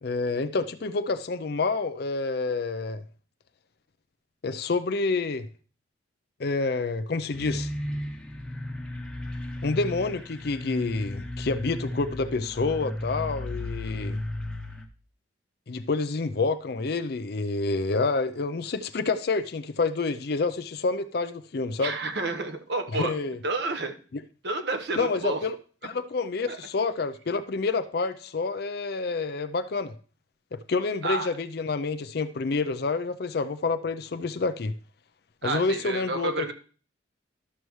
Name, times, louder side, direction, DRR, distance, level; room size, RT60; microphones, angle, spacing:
voice 1, 0.0-3.0 4.4-5.5 6.4-7.7 9.6-14.2 15.7-22.0 22.9-23.4 24.1-24.2 25.0-25.6 25.8-29.9 30.5-34.7 35.4-36.5, left 3 dB, 55° left, 0.5 m, -28 dB
sound 1, 7.3-14.8, left 1 dB, 5° left, 0.9 m, -34 dB
voice 2, 21.8-23.1 23.4-23.9 24.4-25.4 26.5-26.6 31.0-31.3 35.4-36.5, right 3 dB, 60° right, 1.1 m, -30 dB
12.5 x 6.7 x 3.1 m
head